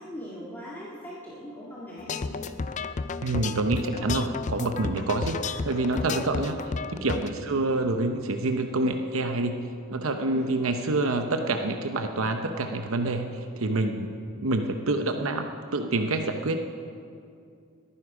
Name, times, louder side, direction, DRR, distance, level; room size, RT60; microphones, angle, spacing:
voice 1, 0.0-2.4 4.9-5.1 7.3-7.6 10.3-10.5, equal, 10° left, -7 dB, 1.9 m, -41 dB
sound 1, 2.0-7.3, left 4 dB, 35° left, 0.4 m, -32 dB
voice 2, 3.2-5.4 5.7-6.6 6.9-9.6 9.9-14.1 14.4-16.6, right 2 dB, 75° right, 6 dB, 0.8 m, -27 dB
21.0 x 9.9 x 4.9 m, 2.4 s
head